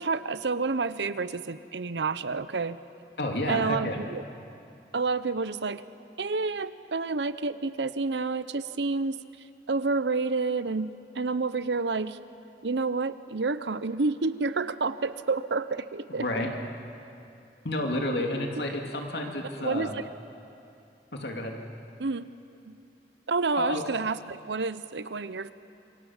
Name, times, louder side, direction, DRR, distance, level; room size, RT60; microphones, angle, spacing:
voice 1, 0.0-2.8 3.5-4.2 4.9-5.8 6.2-9.2 9.7-12.2 12.6-16.2 19.6-19.9 22.0-22.3 22.7-22.8 23.3-25.5, right 4 dB, 85° right, 14 dB, 0.8 m, -29 dB
voice 2, 3.2-4.0 16.1-16.5 17.6-19.9 21.1-21.6 23.6-23.8, left 1 dB, 70° left, 2 dB, 2.7 m, -30 dB
26.5 x 24.5 x 7.3 m, 2.7 s
head